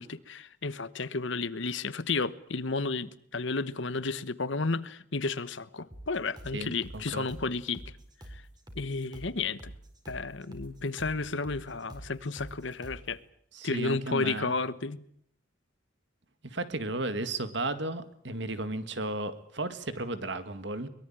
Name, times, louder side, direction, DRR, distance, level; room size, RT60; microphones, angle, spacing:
voice 1, 0.0-7.9 8.3-8.4 8.7-9.7 10.1-13.2 13.6-15.0, left 3 dB, 65° left, 1.1 m, -32 dB
sound 1, 5.9-13.1, right 1 dB, 20° right, 4.4 m, -47 dB
voice 2, 6.5-7.3 13.5-14.5 16.4-20.9, right 2 dB, 60° right, 2.1 m, -34 dB
23.0 x 22.0 x 8.9 m
head